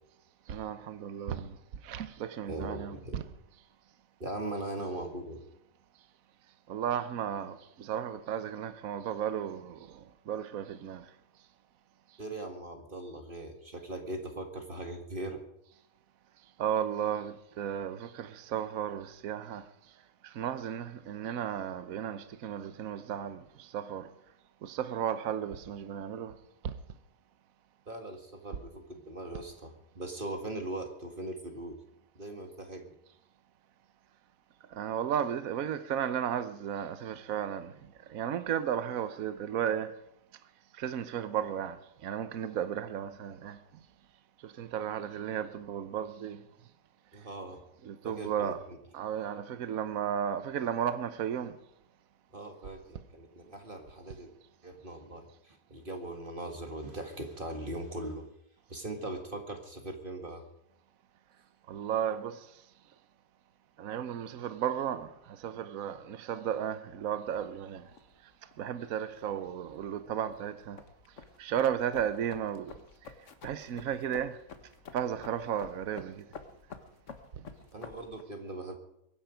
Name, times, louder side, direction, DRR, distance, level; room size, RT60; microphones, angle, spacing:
voice 1, 0.5-1.6 1.8-3.2 6.7-11.0 16.6-19.7 20.2-24.1 24.6-26.3 26.6-26.7 34.7-37.7 38.1-39.9 40.8-43.6 44.4-46.4 47.8-48.6 48.9-51.6 61.7-62.5 63.8-67.9 68.6-70.8 71.4-72.7 73.4-74.4 74.9-76.2, right 9 dB, 70° right, 1.3 m, -34 dB
voice 2, 2.5-3.2 4.2-5.4 12.2-15.4 27.9-31.8 32.2-32.9 47.1-47.6 48.0-48.5 52.3-54.3 54.6-58.3 58.7-60.4 77.7-78.8, right 2 dB, 35° right, 2.1 m, -40 dB
sound 1, 67.3-78.2, left 5 dB, 55° left, 1.6 m, -51 dB
23.0 x 10.5 x 5.1 m
omnidirectional pair, 1.6 m